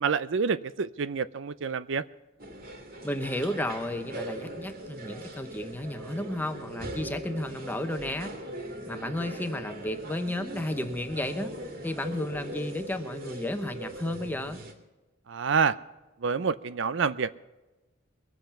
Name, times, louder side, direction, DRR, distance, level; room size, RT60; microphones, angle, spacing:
voice 1, 0.0-2.0 15.3-15.7 16.2-17.4, right 5 dB, 65° right, 15 dB, 0.5 m, -27 dB
sound 1, 2.4-14.7, right 1 dB, 45° right, 2.2 m, -40 dB
voice 2, 3.0-8.3 8.9-11.5 11.8-14.6, left 1 dB, 10° left, 8 dB, 1.0 m, -33 dB
22.0 x 7.8 x 5.8 m, 1.1 s
head